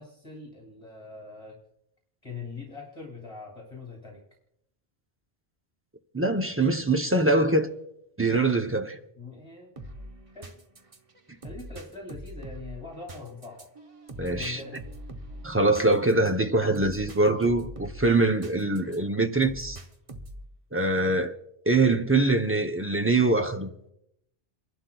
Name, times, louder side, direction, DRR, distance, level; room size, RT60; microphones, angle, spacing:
voice 1, 0.0-1.6 2.2-4.2 9.2-9.7 10.3-10.5 11.4-13.7 14.3-14.9 21.0-21.3, left 3 dB, 30° left, 2.4 m, -42 dB
voice 2, 6.1-7.7 8.2-9.0 14.2-14.6 15.4-19.8 20.7-21.3 21.7-23.7, right 2 dB, 15° right, 0.5 m, -23 dB
sound 1, 9.8-19.0 19.4-20.5, right 1 dB, 35° right, 0.9 m, -43 dB
29.0 x 11.5 x 2.3 m
omnidirectional pair, 1.1 m